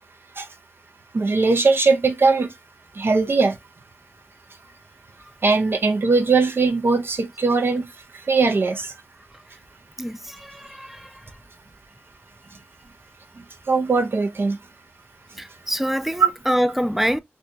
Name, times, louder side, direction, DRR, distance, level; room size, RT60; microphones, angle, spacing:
voice 1, 1.1-2.5 2.9-3.6 5.4-7.9 8.3-8.9 13.7-14.6, right 4 dB, 65° right, 0.6 m, -20 dB
voice 2, 10.0-11.2 15.4-17.2, equal, 5° right, 0.3 m, -25 dB
2.8 x 2.6 x 3.3 m
wide cardioid pair, 65°, 4 cm